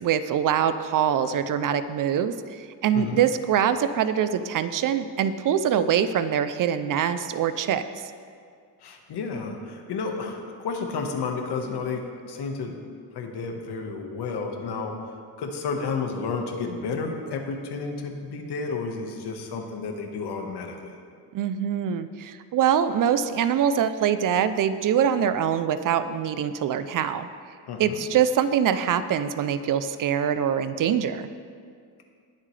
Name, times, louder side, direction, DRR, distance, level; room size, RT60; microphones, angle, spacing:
voice 1, 0.0-7.8 21.3-27.3 27.8-31.3, right 8 dB, 50° right, 12 dB, 0.5 m, -24 dB
voice 2, 8.8-12.7 13.1-15.1 15.4-21.0 27.7-28.0, left 4 dB, 70° left, 3 dB, 1.4 m, -31 dB
19.5 x 7.5 x 3.2 m, 2.2 s
cardioid pair, 165°, 41 cm